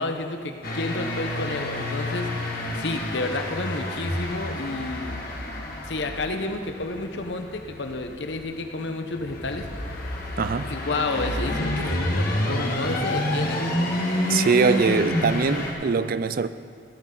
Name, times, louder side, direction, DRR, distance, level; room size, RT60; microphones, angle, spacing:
voice 1, 0.0-2.3 2.7-5.2 5.8-9.7 10.6-13.6, left 2 dB, 70° left, 1.0 m, -30 dB
sound 1, 0.6-15.7, left 1 dB, 50° left, 1.8 m, -29 dB
voice 2, 10.4-10.7 14.3-16.5, right 4 dB, 50° right, 0.4 m, -22 dB
16.5 x 13.0 x 3.9 m
head